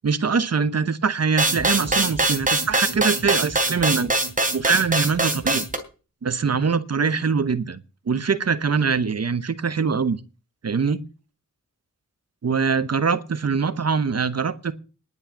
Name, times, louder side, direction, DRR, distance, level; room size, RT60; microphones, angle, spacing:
voice 1, 0.0-4.1 4.5-5.6 6.2-7.8 8.1-10.2 10.6-11.0 12.4-14.7, right 5 dB, 55° right, 13 dB, 1.0 m, -23 dB
sound 1, 1.4-5.8, right 2 dB, 25° right, 3.1 m, -22 dB
11.0 x 8.7 x 8.4 m, 0.34 s
wide cardioid pair, 125°, 31 cm